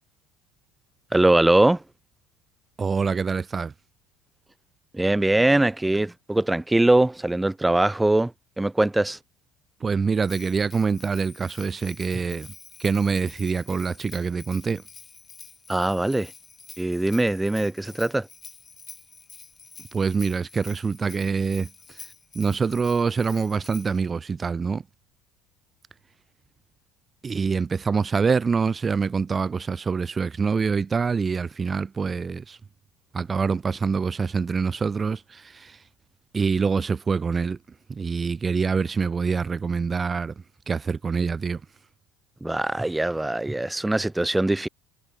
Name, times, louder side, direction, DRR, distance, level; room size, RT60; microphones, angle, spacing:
voice 1, 1.1-1.8 4.9-8.3 8.6-9.2 15.7-16.3 16.8-18.3 42.4-44.7, right 2 dB, 5° right, 0.9 m, -21 dB
voice 2, 2.8-3.7 9.8-12.5 12.8-14.8 19.9-24.8 27.2-32.6 33.1-35.8 36.3-37.6 37.9-40.3 40.7-41.6, right 5 dB, 20° right, 1.5 m, -25 dB
Bell, 10.2-24.0, left 5 dB, 25° left, 7.3 m, -47 dB
cardioid pair, 130°, 0 cm